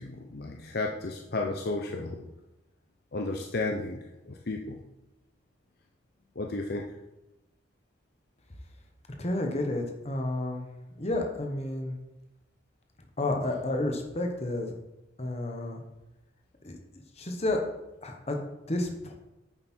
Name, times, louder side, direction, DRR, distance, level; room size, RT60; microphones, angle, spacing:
voice 1, 0.0-2.2 3.1-4.0 4.3-4.8 6.4-6.9, left 2 dB, 55° left, 1 dB, 0.6 m, -33 dB
voice 2, 9.2-10.7 11.0-12.0 13.2-14.7 15.2-15.8 16.6-17.6 18.0-18.4 18.7-19.1, left 1 dB, 35° left, 3 dB, 1.2 m, -31 dB
9.1 x 7.5 x 4.4 m, 0.98 s
head